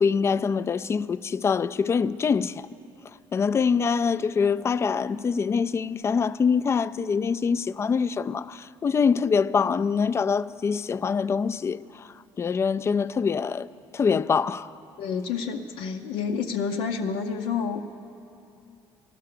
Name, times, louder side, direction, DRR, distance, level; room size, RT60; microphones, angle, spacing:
voice 1, 0.0-2.7 3.3-12.1 12.4-13.7 13.9-14.7, left 6 dB, 30° left, 0.3 m, -24 dB
voice 2, 15.0-17.8, left 6 dB, 85° left, 0.7 m, -29 dB
15.0 x 12.5 x 6.7 m
cardioid pair, 110°, 9 cm